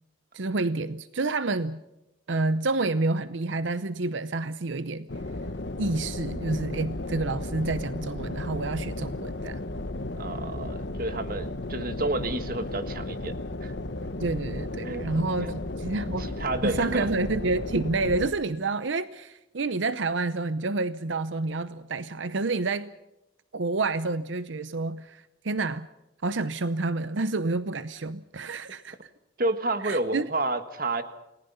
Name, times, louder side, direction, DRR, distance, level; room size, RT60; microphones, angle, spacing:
voice 1, 0.3-1.8 2.3-5.1 5.8-9.6 14.2-22.9 23.5-25.9 26.2-29.1 29.8-30.3, right 3 dB, 80° right, 14 dB, 0.7 m, -29 dB
sound 1, 5.1-18.3, left 2 dB, 65° left, 1.1 m, -34 dB
voice 2, 10.2-13.3 13.6-13.7 14.8-15.0 15.4-15.5 16.2-17.1 29.4-31.0, right 2 dB, 50° right, 10 dB, 1.6 m, -30 dB
29.0 x 19.5 x 5.6 m, 0.92 s
head